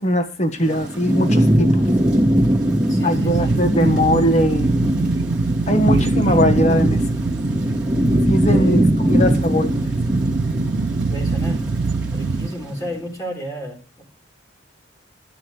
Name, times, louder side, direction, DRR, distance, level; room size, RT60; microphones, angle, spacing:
voice 1, 0.0-1.8 3.0-4.7 5.7-7.0 8.3-9.7, equal, 35° left, 7 dB, 1.4 m, -20 dB
Thunderstorm / Rain, 0.6-12.9, equal, 5° right, 2.8 m, -20 dB
voice 2, 2.9-3.7 8.4-9.1 11.1-11.7 11.9-14.0, equal, 20° left, 0 dB, 3.6 m, -32 dB
sound 1, 3.1-12.5, right 4 dB, 70° right, 0.4 m, -24 dB
12.0 x 10.5 x 3.2 m, 0.35 s
head